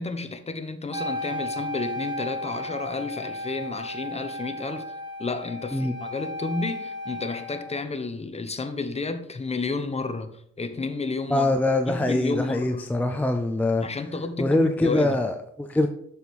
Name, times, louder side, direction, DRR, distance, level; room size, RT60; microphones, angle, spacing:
voice 1, 0.0-4.9 5.2-11.6 11.8-12.9 13.8-15.2, left 3 dB, 20° left, 0.8 m, -31 dB
Wind instrument woodwind instrument, 0.9-7.9, left 1 dB, 15° right, 1.1 m, -34 dB
voice 2, 11.3-13.9 14.4-15.9, left 1 dB, 5° left, 0.5 m, -23 dB
6.9 x 6.2 x 3.5 m
cardioid pair, 90°, 30 cm